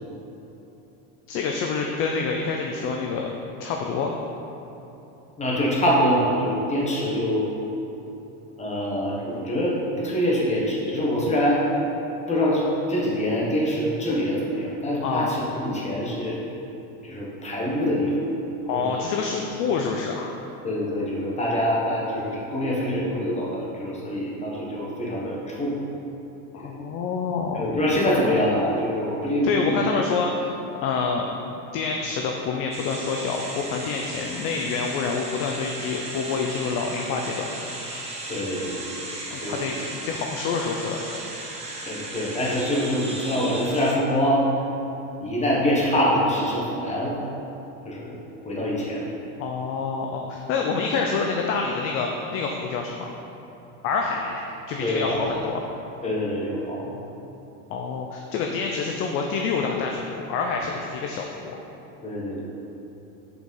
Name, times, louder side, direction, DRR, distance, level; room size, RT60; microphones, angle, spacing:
voice 1, 1.3-3.3 3.6-4.1 15.0-15.3 18.6-20.3 26.5-27.7 29.4-30.5 30.8-31.2 31.7-37.5 39.3-41.3 49.4-53.1 53.8-55.7 57.7-61.6, left 5 dB, 35° left, 1 dB, 0.4 m, -27 dB
voice 2, 5.4-7.5 8.6-11.6 12.3-16.4 17.0-18.1 18.7-18.9 20.6-25.7 26.5-26.8 27.5-29.8 38.3-39.0 39.4-39.6 41.9-44.4 45.2-47.2 47.8-48.1 48.4-49.1 54.8-55.3 56.0-57.1 62.0-62.5, equal, 15° left, -4 dB, 1.3 m, -25 dB
sound 1, 32.7-43.9, right 2 dB, 15° right, 0.9 m, -36 dB
6.4 x 5.1 x 5.4 m, 3.0 s
supercardioid pair, 145°, 43 cm